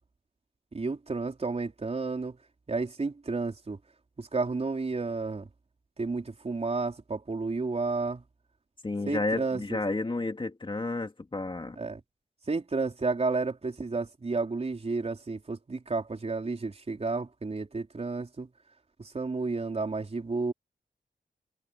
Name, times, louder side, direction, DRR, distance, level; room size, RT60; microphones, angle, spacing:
voice 1, 0.7-2.4 2.7-3.8 4.2-5.5 6.0-8.2 9.0-9.8 11.8-12.0 12.5-18.5 19.0-20.5, right 3 dB, 35° right, 4.2 m, -31 dB
voice 2, 8.8-11.8, left 2 dB, 30° left, 2.4 m, -31 dB
wide cardioid pair, 150°, 18 cm